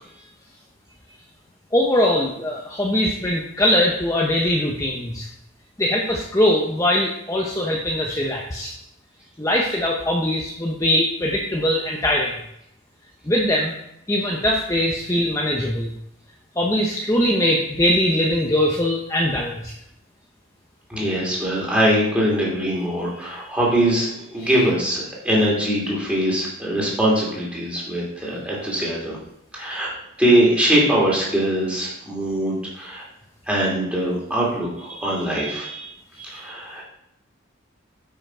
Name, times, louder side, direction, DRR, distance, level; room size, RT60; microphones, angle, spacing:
voice 1, 1.7-5.3 5.8-8.7 9.4-12.4 13.2-13.7 14.1-15.9 16.6-19.7 24.4-24.5, left 1 dB, 15° left, -1 dB, 0.7 m, -21 dB
voice 2, 20.9-29.2 29.5-29.9 30.2-33.0 33.5-36.8, right 1 dB, 5° right, -5 dB, 2.6 m, -22 dB
8.9 x 5.8 x 4.4 m, 0.78 s
head